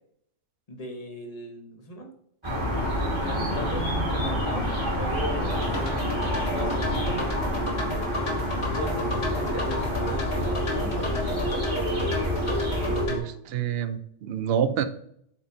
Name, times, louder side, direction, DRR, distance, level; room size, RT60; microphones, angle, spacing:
voice 1, 0.7-2.1 3.2-5.7 6.0-7.3 8.0-11.6, equal, 35° left, 2 dB, 1.2 m, -38 dB
sound 1, 2.4-13.1, equal, 25° right, 2.3 m, -28 dB
sound 2, 5.5-13.2, left 1 dB, 65° left, 1.7 m, -31 dB
voice 2, 13.1-14.8, right 9 dB, 60° right, 10 dB, 0.8 m, -27 dB
7.9 x 4.5 x 2.7 m, 0.68 s
omnidirectional pair, 1.2 m